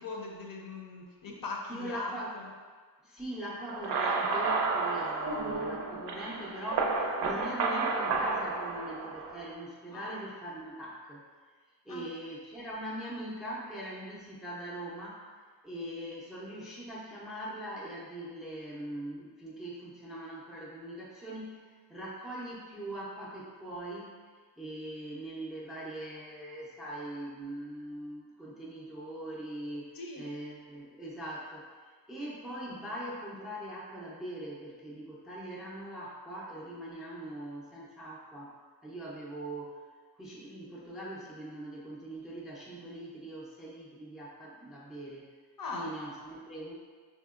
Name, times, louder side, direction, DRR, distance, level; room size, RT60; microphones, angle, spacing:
voice 1, 0.0-2.5 9.9-10.2 11.9-12.1 29.9-30.3 45.6-45.9, left 3 dB, 55° left, -1 dB, 0.6 m, -40 dB
voice 2, 1.7-2.3 3.0-11.2 11.9-15.4 15.6-24.2 24.6-38.6 38.8-39.8 40.2-45.3 45.7-46.7, right 1 dB, ahead, -4 dB, 0.4 m, -41 dB
sound 1, 3.7-9.5, right 3 dB, 70° right, 0.5 m, -31 dB
4.1 x 2.8 x 2.4 m, 1.5 s
wide cardioid pair, 130°, 42 cm